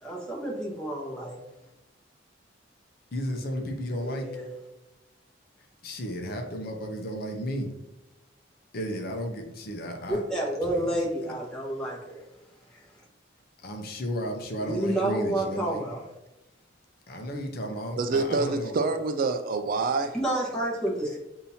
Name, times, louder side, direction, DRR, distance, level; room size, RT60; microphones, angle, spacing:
voice 1, 0.0-1.4 4.0-4.5 10.1-12.2 12.7-12.9 14.6-16.1 20.1-21.2, right 1 dB, 5° left, -5 dB, 1.2 m, -29 dB
voice 2, 3.1-4.2 5.8-7.7 8.7-10.2 10.7-10.8 13.6-15.8 17.1-18.7, equal, 50° left, 3 dB, 0.7 m, -33 dB
voice 3, 18.0-20.2, right 3 dB, 45° right, 8 dB, 0.3 m, -26 dB
7.0 x 2.7 x 2.7 m, 0.94 s
head